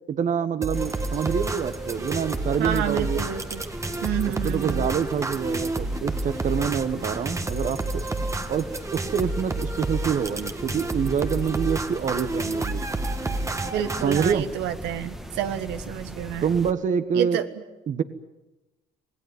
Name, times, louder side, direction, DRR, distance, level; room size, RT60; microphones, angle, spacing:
voice 1, 0.1-3.2 4.4-8.0 8.5-8.7 8.9-12.8 14.0-14.4 16.4-17.4 17.9-18.0, right 7 dB, 50° right, 11 dB, 1.4 m, -26 dB
sound 1, 0.6-14.3, right 2 dB, 15° right, 1.5 m, -30 dB
sound 2, 0.7-16.7, equal, ahead, 1.6 m, -39 dB
voice 2, 2.6-3.6 4.0-4.9 13.7-16.5 17.1-17.5, right 10 dB, 90° right, 9 dB, 1.7 m, -29 dB
26.5 x 18.5 x 9.3 m, 1.0 s
cardioid pair, 110°, 17 cm